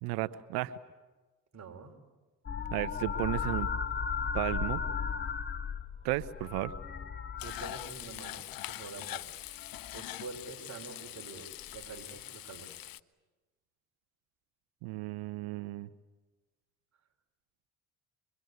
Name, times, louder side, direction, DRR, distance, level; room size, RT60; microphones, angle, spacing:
voice 1, 0.0-0.7 2.7-3.7 4.3-4.8 6.0-6.7 14.8-15.9, right 18 dB, 75° right, 15 dB, 0.9 m, -34 dB
voice 2, 1.5-1.9 7.4-9.3 9.9-12.8, right 4 dB, 45° right, 3 dB, 4.2 m, -46 dB
sound 1, 2.5-8.3 9.5-10.0 11.7-11.9, left 6 dB, 30° left, 1.7 m, -35 dB
Frying (food), 7.4-13.0, left 15 dB, 60° left, 0.8 m, -43 dB
25.0 x 23.0 x 9.5 m, 1.2 s
hypercardioid pair, 60°, 39 cm